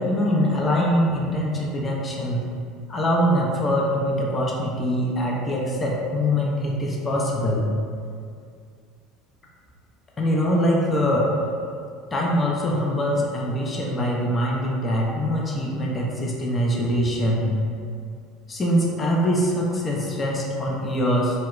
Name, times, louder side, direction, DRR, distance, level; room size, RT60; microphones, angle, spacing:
voice 1, 0.0-2.4 2.9-7.6 10.2-11.3 12.1-17.5 18.5-21.4, equal, 25° left, -3 dB, 0.4 m, -23 dB
2.1 x 2.0 x 3.0 m, 2.2 s
figure-of-eight pair, 70°, 0 cm